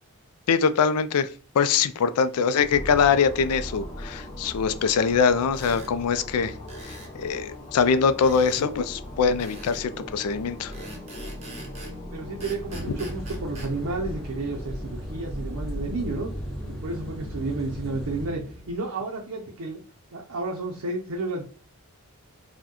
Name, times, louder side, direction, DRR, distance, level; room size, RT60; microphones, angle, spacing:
voice 1, 0.5-1.3 1.5-6.5 6.8-6.9 7.2-10.7, left 6 dB, 85° left, 0.4 m, -23 dB
sound 1, 2.6-18.8, left 1 dB, 30° left, 0.7 m, -39 dB
sound 2, 5.5-5.9 6.7-7.1 8.2-8.7 9.4-9.9 10.7-12.0 12.4-13.7, right 2 dB, 30° right, 0.8 m, -44 dB
voice 2, 12.1-16.3 16.8-19.8 20.1-21.4, right 3 dB, 70° right, 0.5 m, -31 dB
sound 3, 12.7-18.3, right 1 dB, ahead, 1.0 m, -37 dB
4.4 x 2.1 x 2.9 m
head